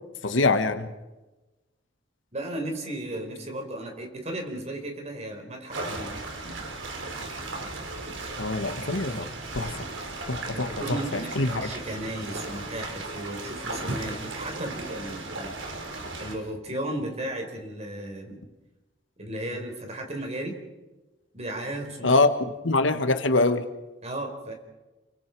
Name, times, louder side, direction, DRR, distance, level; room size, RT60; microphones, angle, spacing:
voice 1, 0.2-0.9 8.4-9.3 9.5-9.7 10.3-11.7 22.0-22.3 22.6-23.7, left 3 dB, 80° left, 9 dB, 1.5 m, -24 dB
voice 2, 2.3-6.1 10.5-15.5 16.2-18.4 19.2-20.5 21.3-22.1 24.0-24.5, right 1 dB, 35° right, 3 dB, 4.5 m, -35 dB
sound 1, 5.7-16.4, right 2 dB, 80° right, 4.0 m, -36 dB
28.5 x 24.0 x 4.7 m, 1.1 s
head